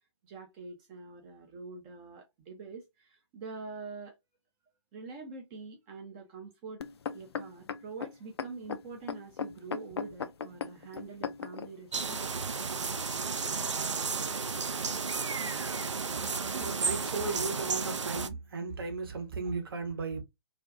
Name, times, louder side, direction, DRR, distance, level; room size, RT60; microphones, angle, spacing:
voice 1, 0.2-4.1 4.9-6.8 7.1-12.7, right 4 dB, 20° right, 0.5 m, -45 dB
sound 1, 6.8-11.7 12.4-12.5, left 6 dB, 60° left, 0.4 m, -37 dB
sound 2, 11.9-18.3, right 5 dB, 75° right, 0.4 m, -33 dB
voice 2, 16.5-20.2, right 4 dB, 50° right, 0.8 m, -35 dB
2.5 x 2.2 x 2.3 m
figure-of-eight pair, 130°, 15 cm